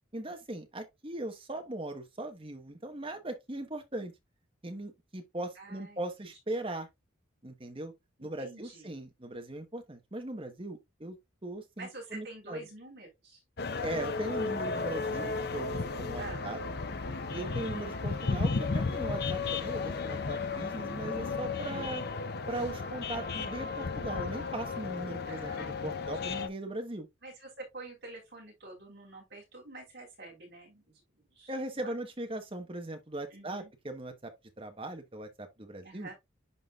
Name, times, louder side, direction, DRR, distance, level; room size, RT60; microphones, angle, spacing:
voice 1, 0.1-4.1 4.6-6.9 7.4-7.9 8.2-11.2 11.4-12.6 13.8-16.6 17.3-22.0 22.5-27.1 31.5-36.1, right 1 dB, 25° right, 1.1 m, -39 dB
voice 2, 5.6-6.3 8.2-8.9 11.8-13.4 16.2-16.4 25.3-26.4 27.2-31.9 33.3-33.7 35.8-36.1, right 2 dB, 55° right, 4.0 m, -48 dB
sound 1, 13.6-26.5, left 4 dB, 50° left, 0.6 m, -34 dB
11.0 x 3.8 x 2.4 m
head